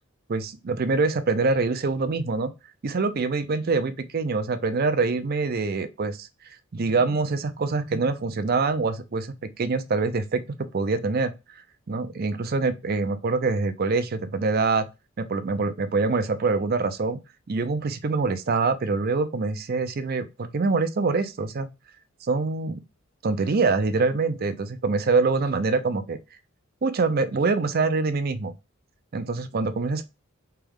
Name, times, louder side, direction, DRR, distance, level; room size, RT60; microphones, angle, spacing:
voice 1, 0.3-2.5 2.8-6.3 6.7-10.4 10.7-11.3 11.9-14.9 15.2-17.2 17.5-21.7 22.3-22.8 23.2-26.2 26.8-28.5 29.1-30.0, right 4 dB, 45° right, 0.5 m, -25 dB
3.5 x 3.4 x 3.5 m
head